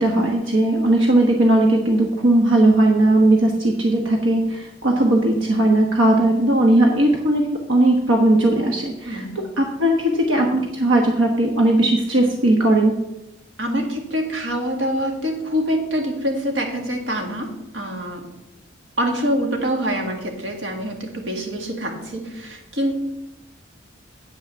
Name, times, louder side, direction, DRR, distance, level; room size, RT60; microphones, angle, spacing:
voice 1, 0.0-13.0, right 1 dB, 90° right, 2 dB, 1.1 m, -18 dB
voice 2, 9.1-9.5 13.6-18.3 19.0-22.9, equal, 65° right, 1 dB, 2.0 m, -25 dB
8.8 x 5.9 x 6.7 m, 0.91 s
head